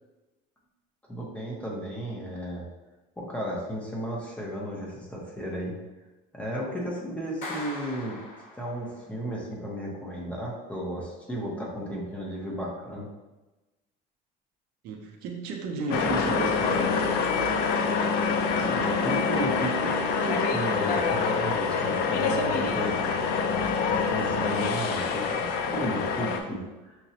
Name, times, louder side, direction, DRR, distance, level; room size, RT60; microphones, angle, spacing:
voice 1, 1.1-2.7 3.2-5.7 6.3-8.2 8.5-13.1 18.6-23.0 23.9-27.0, equal, 5° left, -4 dB, 0.6 m, -34 dB
Clapping, 7.4-9.1, left 2 dB, 40° left, 0.8 m, -40 dB
voice 2, 14.8-17.6 17.9-18.4, right 3 dB, 55° right, 2 dB, 0.5 m, -34 dB
sound 1, 15.9-26.4, left 5 dB, 55° left, 0.4 m, -26 dB
5.8 x 2.0 x 2.7 m, 1.1 s
cardioid pair, 170°, 20 cm